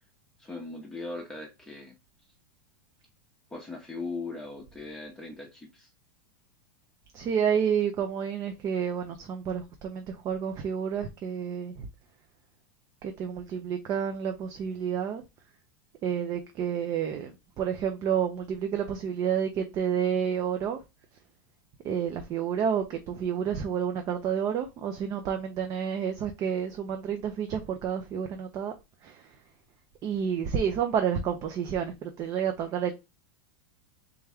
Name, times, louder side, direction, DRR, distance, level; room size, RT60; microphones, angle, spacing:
voice 1, 0.4-1.9 3.5-5.9, left 3 dB, 5° left, 0.7 m, -39 dB
voice 2, 7.1-11.9 13.0-15.2 16.0-17.3 17.6-20.8 21.8-28.7 29.0-29.2 30.0-32.9, right 8 dB, 35° right, 0.5 m, -30 dB
3.5 x 3.1 x 3.4 m
supercardioid pair, 135°, 11 cm